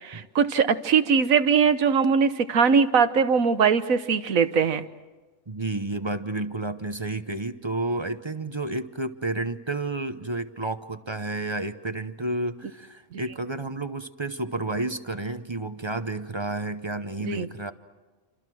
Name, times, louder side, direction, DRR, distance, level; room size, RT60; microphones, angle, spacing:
voice 1, 0.0-4.8 13.1-13.2 17.2-17.5, right 6 dB, 90° right, 11 dB, 1.5 m, -21 dB
voice 2, 5.5-17.7, right 2 dB, 25° right, 10 dB, 0.7 m, -31 dB
28.5 x 26.5 x 6.2 m, 1.2 s
omnidirectional pair, 1.4 m